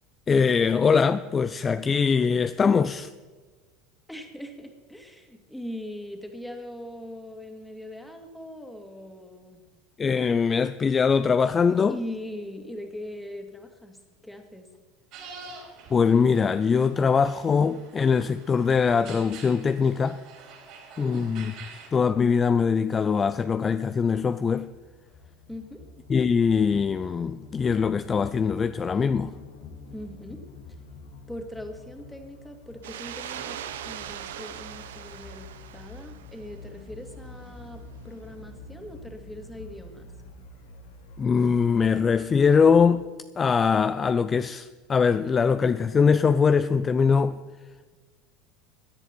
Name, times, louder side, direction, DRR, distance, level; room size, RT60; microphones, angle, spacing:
voice 1, 0.3-3.1 10.0-12.0 15.9-20.2 21.0-21.5 21.9-24.7 26.1-29.3 41.2-43.1 43.4-47.4, left 6 dB, 30° left, 0.5 m, -22 dB
voice 2, 4.1-9.6 11.9-14.0 14.2-14.7 21.0-21.3 25.5-25.8 29.9-30.4 31.3-33.6 33.8-40.1, left 1 dB, 5° left, 2.3 m, -40 dB
sound 1, 15.1-21.9, right 4 dB, 60° right, 4.5 m, -47 dB
sound 2, 24.6-42.9, left 3 dB, 80° left, 2.0 m, -47 dB
sound 3, 32.8-36.6, right 10 dB, 80° right, 0.8 m, -40 dB
17.0 x 10.5 x 4.5 m
hypercardioid pair, 80°, 0 cm